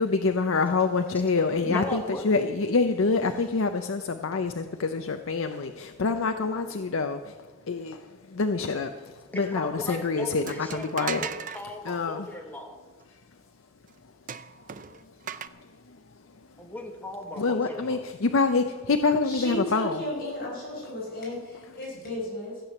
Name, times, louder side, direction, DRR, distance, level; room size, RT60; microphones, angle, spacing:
voice 1, 0.0-11.2 11.9-12.3 15.9-16.0 17.4-20.0, left 4 dB, 70° left, 7 dB, 0.6 m, -26 dB
voice 2, 1.6-2.5 9.3-12.8 16.6-18.0, left 1 dB, 10° left, 2 dB, 1.6 m, -37 dB
sound 1, 10.5-11.6 14.3-15.5, right 7 dB, 40° right, 0.5 m, -36 dB
voice 3, 19.2-22.6, left 1 dB, 45° left, -4 dB, 5.4 m, -34 dB
15.0 x 8.4 x 7.1 m, 1.3 s
head